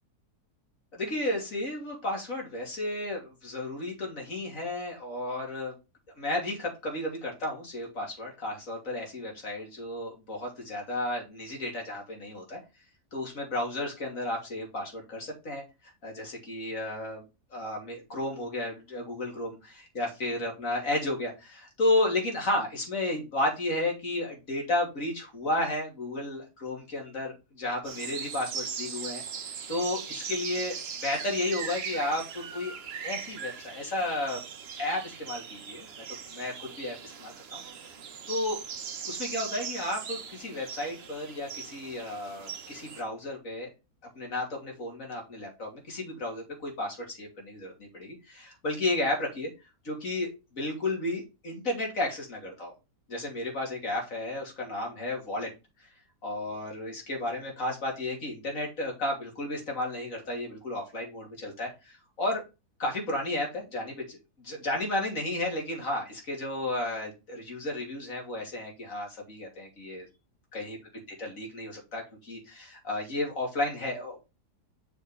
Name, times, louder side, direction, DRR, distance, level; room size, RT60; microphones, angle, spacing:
voice 1, 0.9-5.7 6.2-12.6 13.1-17.2 17.5-29.2 29.7-32.7 33.0-34.4 34.8-35.9 36.3-37.6 38.3-38.6 39.1-43.7 44.1-49.5 49.8-52.7 53.1-55.5 56.2-62.4 62.8-70.1 70.5-70.8 71.2-74.3, left 1 dB, 55° left, 0 dB, 3.1 m, -33 dB
sound 1, 27.8-43.0, right 6 dB, 50° right, 0.9 m, -40 dB
6.7 x 4.7 x 4.9 m, 0.27 s
omnidirectional pair, 1.7 m